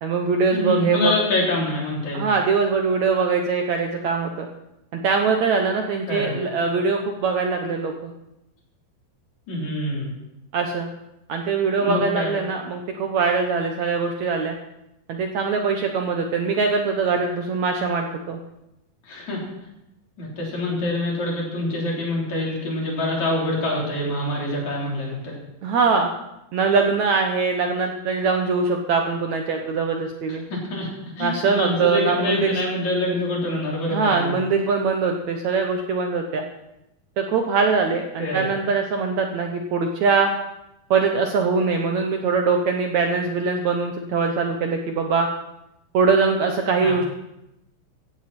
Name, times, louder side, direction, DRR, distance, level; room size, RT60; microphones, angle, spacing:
voice 1, 0.0-1.1 2.1-4.5 4.9-8.1 10.5-10.9 11.3-14.6 15.1-18.4 25.6-26.1 26.5-30.4 31.2-32.5 33.9-36.4 37.2-40.3 40.9-45.3 45.9-47.0, right 4 dB, 65° right, 3 dB, 1.9 m, -22 dB
voice 2, 0.5-2.3 6.1-6.4 9.5-10.1 11.8-12.3 19.0-19.4 20.2-25.4 30.5-30.9 31.2-34.3 38.2-38.5 46.8-47.0, left 1 dB, 50° left, -3 dB, 5.2 m, -25 dB
16.0 x 15.5 x 4.3 m, 0.87 s
omnidirectional pair, 4.1 m